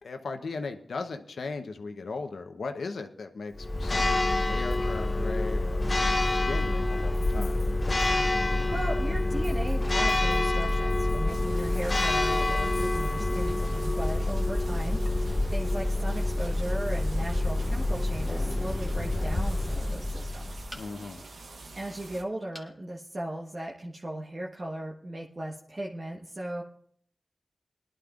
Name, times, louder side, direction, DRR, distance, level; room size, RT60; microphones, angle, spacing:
voice 1, 0.0-7.6 20.7-21.2, left 4 dB, 85° left, 6 dB, 0.9 m, -38 dB
Church bell, 3.6-20.8, left 2 dB, 40° left, 0.6 m, -27 dB
voice 2, 8.7-15.2 15.5-20.7 21.7-26.6, right 1 dB, 50° right, -2 dB, 1.2 m, -37 dB
sound 1, 11.3-22.2, right 3 dB, 90° right, 0.9 m, -46 dB
sound 2, 20.7-21.3 22.5-22.8 23.4-23.5 23.8-23.9, equal, ahead, 1.8 m, -46 dB
20.5 x 11.0 x 2.5 m, 0.62 s
cardioid pair, 40°, 0 cm